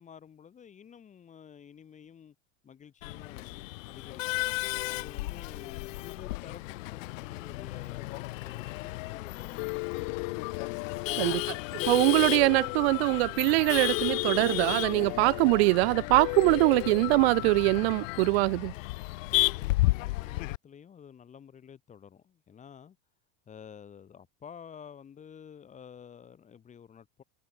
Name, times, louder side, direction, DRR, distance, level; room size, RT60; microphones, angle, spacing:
voice 1, 0.0-2.4 2.6-3.6 3.8-4.5 4.8-10.5 10.9-11.5 19.4-23.0 23.5-27.2, left 8 dB, 20° left, 4.1 m, -51 dB
Male speech man speaking / Laughter / Chatter, 3.0-20.6, left 20 dB, 70° left, 0.8 m, -34 dB
Piano, 9.6-18.3, left 40 dB or more, 45° left, 2.3 m, -36 dB
voice 2, 11.9-18.7, right 24 dB, 50° right, 0.7 m, -23 dB
supercardioid pair, 165°, 40 cm